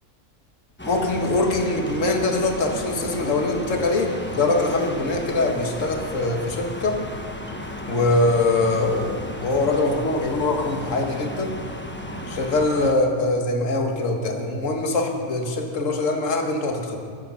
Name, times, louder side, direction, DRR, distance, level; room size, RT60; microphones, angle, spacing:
voice 1, 0.8-7.0 7.9-11.5 12.3-17.0, left 2 dB, 55° left, 2 dB, 1.9 m, -23 dB
sound 1, 0.8-12.9, equal, 10° left, 0.9 m, -34 dB
22.5 x 8.5 x 5.7 m, 2.2 s
omnidirectional pair, 1.6 m